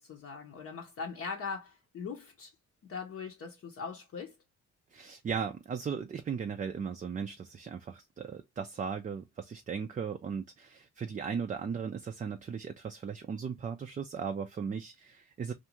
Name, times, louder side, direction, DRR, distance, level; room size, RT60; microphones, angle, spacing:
voice 1, 0.1-2.5 2.9-4.3, left 5 dB, 50° left, 0.7 m, -40 dB
voice 2, 4.9-15.5, right 6 dB, 25° right, 0.4 m, -37 dB
2.5 x 2.3 x 2.9 m
cardioid pair, 90°, 30 cm